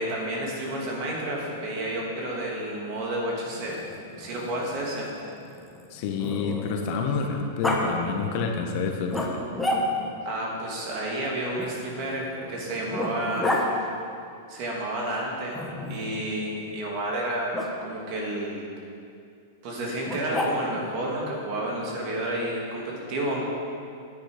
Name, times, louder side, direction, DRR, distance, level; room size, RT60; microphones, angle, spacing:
voice 1, 0.0-5.1 10.2-13.6 14.5-15.6 15.9-17.5 17.8-18.7 19.6-23.4, right 1 dB, 45° right, -3 dB, 3.0 m, -30 dB
Growling, 3.5-6.9 7.6-7.8 9.1-10.2 11.6-13.7 15.5-16.2 17.5-17.7 20.0-20.9, left 1 dB, 5° left, 1.3 m, -31 dB
voice 2, 5.9-9.4, left 5 dB, 50° left, 3 dB, 1.3 m, -28 dB
9.8 x 9.4 x 5.1 m, 2.4 s
hypercardioid pair, 130°, 0 cm